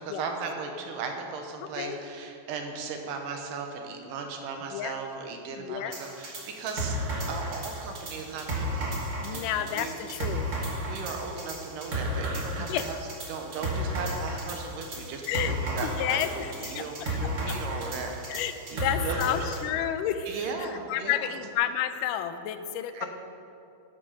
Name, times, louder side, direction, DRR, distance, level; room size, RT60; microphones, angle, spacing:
voice 1, 0.0-8.9 9.3-9.9 10.8-13.0 13.3-18.2 18.7-19.5 20.2-21.3 22.9-23.1, right 4 dB, 80° right, 3 dB, 2.5 m, -37 dB
voice 2, 1.6-2.0 4.7-4.9 5.6-6.0 9.2-10.5 12.7-12.8 15.3-15.5 15.8-17.2 17.5-17.6 18.3-20.3 20.6-23.1, left 10 dB, 80° left, 10 dB, 2.1 m, -31 dB
sound 1, 5.9-19.6, right 1 dB, 50° right, 0.9 m, -33 dB
12.5 x 7.5 x 5.6 m, 2.7 s
omnidirectional pair, 3.9 m